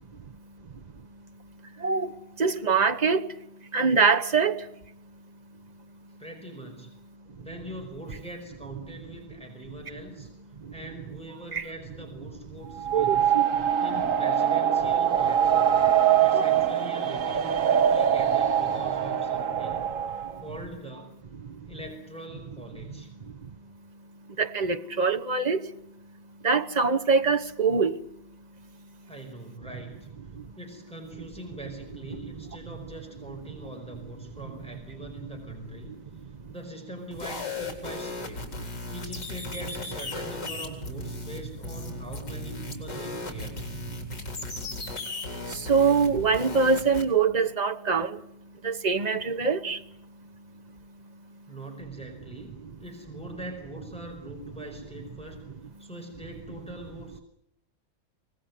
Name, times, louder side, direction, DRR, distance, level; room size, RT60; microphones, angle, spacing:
voice 1, 1.8-3.3 3.7-4.7 10.6-10.7 11.5-11.6 12.9-13.5 16.3-16.4 21.4-21.5 24.4-25.7 26.4-28.0 30.3-30.4 35.9-36.0 45.5-48.2 48.6-49.8, right 5 dB, 30° right, 0.8 m, -24 dB
voice 2, 6.2-6.9 7.4-10.3 10.7-13.3 13.8-19.9 20.4-21.1 21.6-23.1 29.1-30.1 30.6-35.9 36.5-38.5 38.9-43.6 51.5-55.4 55.8-57.2, right 1 dB, 5° left, 5.0 m, -42 dB
sound 1, 12.7-20.4, right 9 dB, 50° right, 1.4 m, -23 dB
sound 2, 37.1-47.0, left 2 dB, 65° left, 4.6 m, -36 dB
25.0 x 19.0 x 9.4 m
omnidirectional pair, 2.0 m